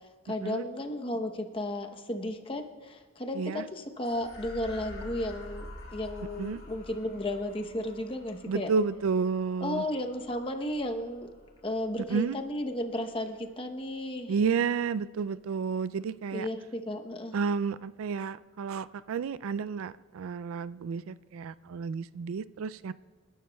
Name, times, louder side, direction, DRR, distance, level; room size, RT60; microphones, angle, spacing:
voice 1, 0.2-8.7 9.6-11.3 11.6-14.3 16.3-17.3, left 1 dB, 25° left, 4 dB, 0.9 m, -34 dB
sound 1, 4.0-12.7, left 1 dB, 65° left, 3.4 m, -48 dB
voice 2, 8.5-9.8 12.1-12.4 14.3-16.5 17.3-22.9, right 5 dB, 85° right, 17 dB, 0.3 m, -31 dB
28.5 x 12.0 x 2.3 m, 1.4 s
head